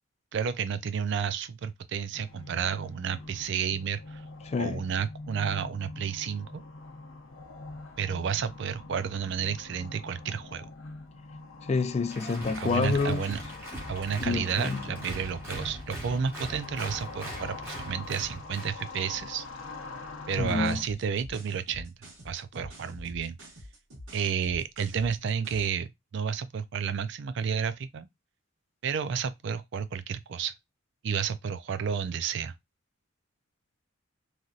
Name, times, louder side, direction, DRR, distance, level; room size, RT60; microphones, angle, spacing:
voice 1, 0.3-4.2 4.6-6.6 8.0-10.7 12.6-13.4 13.9-19.4 20.3-21.9 22.2-23.4 24.1-28.1 28.8-30.5 31.0-32.5, right 7 dB, 60° right, 0.4 m, -31 dB
sound 1, 2.1-20.8, left 3 dB, 80° left, 0.6 m, -44 dB
voice 2, 4.5-4.8 11.7-13.3 14.2-14.8 20.4-20.8, left 4 dB, 35° left, 0.3 m, -28 dB
Applause, 12.1-18.8, right 1 dB, 10° right, 1.1 m, -41 dB
sound 2, 20.3-25.8, equal, 75° right, 1.4 m, -46 dB
3.2 x 2.6 x 2.4 m
head